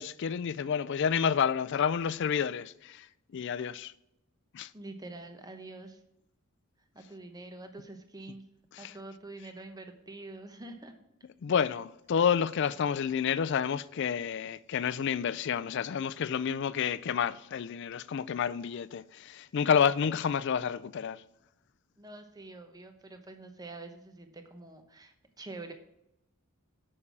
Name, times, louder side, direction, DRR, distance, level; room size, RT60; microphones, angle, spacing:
voice 1, 0.0-3.1 3.3-3.9 4.5-4.7 8.7-8.9 11.4-21.2, left 7 dB, 50° left, 0.3 m, -29 dB
voice 2, 4.7-6.0 6.9-8.4 8.8-10.9 22.0-25.7, right 2 dB, 15° right, 0.8 m, -46 dB
6.6 x 5.5 x 7.1 m
head